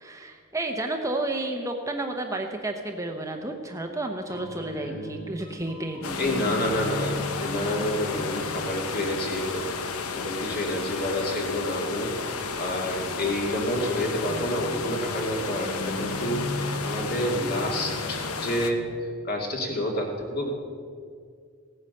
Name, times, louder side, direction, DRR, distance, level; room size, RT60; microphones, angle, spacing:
voice 1, 0.0-6.5, right 2 dB, 15° right, 3 dB, 0.8 m, -31 dB
sound 1, 4.1-10.7 12.6-19.1, equal, 70° left, 4.6 m, -38 dB
voice 2, 4.8-5.2 6.2-20.5, left 1 dB, 45° left, 0 dB, 2.4 m, -29 dB
sound 2, 6.0-18.7, left 5 dB, 85° left, 1.0 m, -33 dB
16.5 x 9.5 x 6.6 m, 2.1 s
head